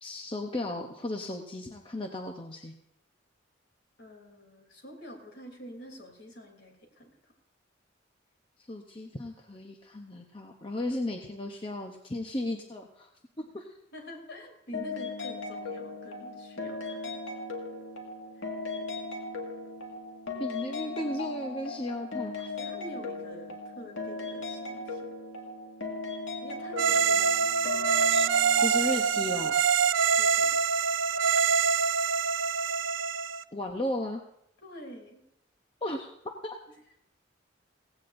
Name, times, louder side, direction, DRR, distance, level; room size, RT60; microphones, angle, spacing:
voice 1, 0.0-2.7 8.7-13.1 13.4-13.7 20.4-22.5 28.6-29.6 33.5-34.2 35.8-36.1 36.4-36.6, left 1 dB, 25° left, 2 dB, 0.8 m, -35 dB
voice 2, 4.0-7.3 13.9-17.1 22.6-25.0 26.4-28.0 30.1-30.6 34.6-35.2, equal, 60° left, 3 dB, 3.1 m, -47 dB
sound 1, 14.7-29.5, left 3 dB, 85° left, 1.9 m, -38 dB
sound 2, 26.8-33.4, right 6 dB, 80° right, 0.4 m, -25 dB
17.0 x 16.5 x 2.6 m, 0.78 s
head